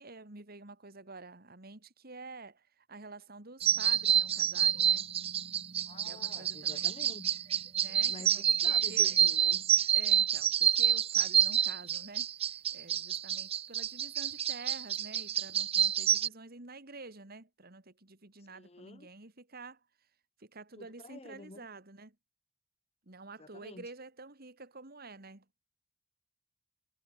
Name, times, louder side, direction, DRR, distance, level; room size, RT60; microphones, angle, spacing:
voice 1, 0.0-5.0 6.0-6.9 7.8-9.2 9.9-19.8 20.4-22.2 23.1-25.5, right 3 dB, 50° right, 2.8 m, -49 dB
sound 1, 3.6-16.3, right 9 dB, 30° right, 0.5 m, -28 dB
voice 2, 5.9-7.4 8.1-9.6 18.5-19.1 20.8-21.7 23.4-23.9, left 2 dB, 30° left, 1.0 m, -49 dB
head